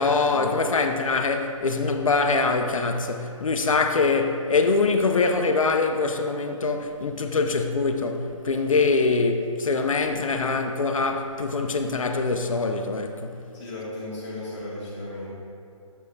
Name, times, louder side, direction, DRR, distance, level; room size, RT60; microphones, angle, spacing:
voice 1, 0.0-13.4, left 4 dB, 70° left, 0.7 m, -24 dB
voice 2, 13.5-15.3, left 1 dB, 15° left, 1.4 m, -35 dB
7.1 x 7.0 x 3.3 m
hypercardioid pair, 175°, 18 cm